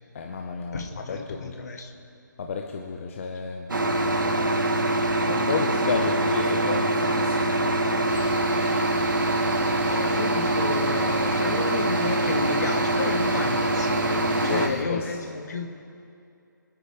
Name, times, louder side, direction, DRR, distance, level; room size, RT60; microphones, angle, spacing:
voice 1, 0.1-1.5 2.4-3.7 5.2-7.9 14.3-15.1, left 5 dB, 40° left, 2 dB, 1.0 m, -31 dB
voice 2, 0.7-1.9 9.9-15.8, left 4 dB, 55° left, 4 dB, 1.8 m, -32 dB
sound 1, 3.7-14.7, right 1 dB, 75° right, 1.9 m, -24 dB
Wind instrument woodwind instrument, 4.8-12.9, left 1 dB, 15° right, 2.6 m, -42 dB
Cricket, 8.1-14.8, right 3 dB, 35° right, 3.3 m, -38 dB
26.5 x 9.9 x 3.7 m, 2.5 s
figure-of-eight pair, 150°, 11 cm